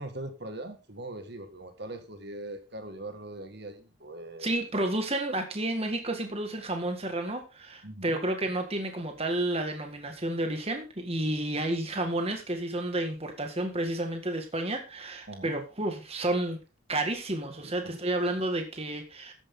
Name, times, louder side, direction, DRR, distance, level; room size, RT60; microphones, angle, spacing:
voice 1, 0.0-4.6 7.8-8.2 15.3-15.5 17.6-18.0, right 1 dB, 50° right, 7 dB, 1.9 m, -41 dB
voice 2, 4.4-16.6 16.9-19.3, right 1 dB, 30° right, 5 dB, 1.8 m, -31 dB
13.5 x 10.0 x 3.7 m, 0.31 s
head